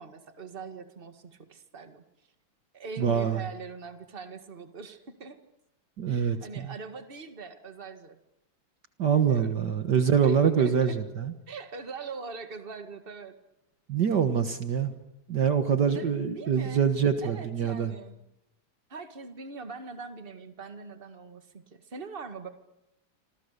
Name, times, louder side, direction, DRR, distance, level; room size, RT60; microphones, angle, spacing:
voice 1, 0.0-2.0 2.7-5.4 6.1-8.2 9.1-9.6 10.2-11.0 11.5-13.4 15.9-16.9 17.2-18.2 18.9-22.5, right 4 dB, 30° right, 7 dB, 2.0 m, -42 dB
voice 2, 3.0-3.4 6.0-6.7 9.0-11.3 13.9-14.9 15.3-17.9, right 7 dB, 60° right, 8 dB, 1.9 m, -25 dB
28.0 x 26.0 x 6.8 m, 0.89 s
omnidirectional pair, 2.2 m